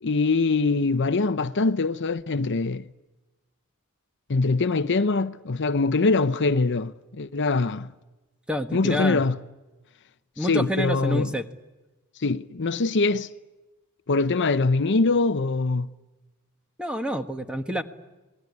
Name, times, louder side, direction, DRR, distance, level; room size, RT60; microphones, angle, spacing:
voice 1, 0.0-2.9 4.3-7.9 8.7-9.4 10.4-11.3 12.2-13.3 14.1-15.9, left 3 dB, 55° left, 0.8 m, -23 dB
voice 2, 8.5-9.2 10.4-11.4 16.8-17.8, equal, 5° right, 1.4 m, -28 dB
27.0 x 20.0 x 9.7 m
head